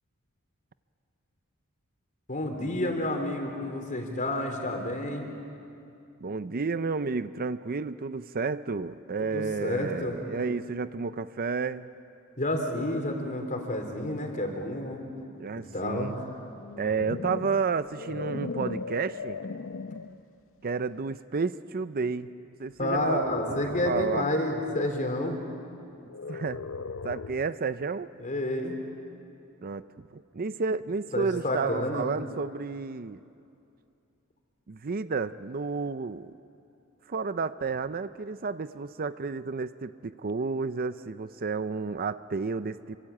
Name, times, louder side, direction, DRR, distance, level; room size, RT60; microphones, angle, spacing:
voice 1, 2.3-5.3 9.2-10.3 12.4-15.0 15.7-16.3 22.8-25.4 28.2-28.8 31.1-32.1, left 1 dB, 35° left, 3 dB, 3.9 m, -30 dB
voice 2, 6.2-11.9 15.4-16.2 16.8-19.4 20.6-22.3 22.6-24.3 26.3-26.6 27.0-28.1 29.6-29.8 30.1-33.2 34.7-36.3 37.1-43.0, right 4 dB, 40° right, 13 dB, 0.5 m, -31 dB
sound 1, 16.5-20.2 20.8-21.1 22.9-24.4 26.1-27.5, left 4 dB, 60° left, 0.7 m, -38 dB
27.5 x 24.5 x 8.6 m, 2.6 s
head